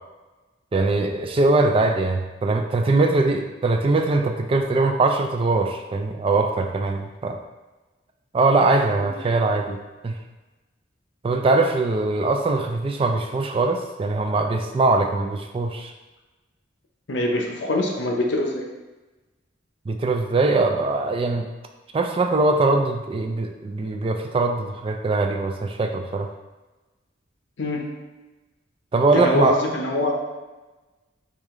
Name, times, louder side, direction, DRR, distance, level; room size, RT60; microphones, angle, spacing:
voice 1, 0.7-7.4 8.3-9.8 10.0-10.1 11.2-15.9 19.9-21.5 21.9-26.3 28.9-29.6, right 3 dB, 30° right, 4 dB, 0.3 m, -21 dB
voice 2, 17.1-18.6 27.6-27.8 29.1-30.1, left 1 dB, 70° left, 1 dB, 0.7 m, -24 dB
4.8 x 2.8 x 3.6 m, 1.2 s
head